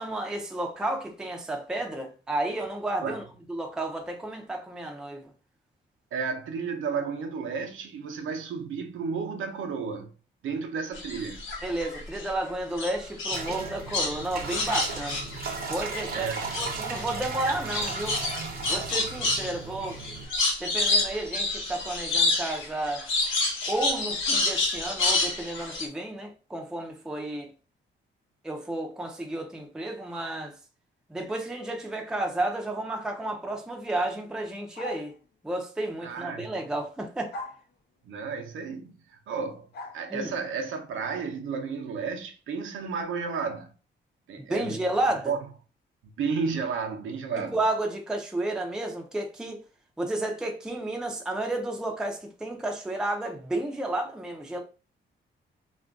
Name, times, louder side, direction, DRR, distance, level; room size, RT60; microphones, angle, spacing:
voice 1, 0.0-3.2 3.5-5.3 11.6-15.2 15.7-18.2 18.7-20.0 20.6-23.3 23.7-27.5 28.4-30.6 31.1-35.1 35.4-37.3 40.1-40.3 44.4-45.3 47.5-49.6 50.0-54.6, right 1 dB, 5° right, 0.4 m, -32 dB
voice 2, 6.1-10.1 10.4-11.4 16.1-16.6 36.0-36.5 38.0-39.7 39.9-43.7 44.3-44.8 45.1-45.4 46.2-47.6, right 5 dB, 90° right, 0.6 m, -32 dB
sound 1, 10.9-12.3 12.8-16.1 16.3-25.9, left 2 dB, 85° left, 0.8 m, -28 dB
sound 2, 13.3-20.3, right 4 dB, 50° right, 0.6 m, -36 dB
sound 3, 34.8-35.1 37.3-37.6 39.7-40.0, left 2 dB, 55° left, 0.5 m, -38 dB
2.4 x 2.2 x 3.5 m
cardioid pair, 130°, 20 cm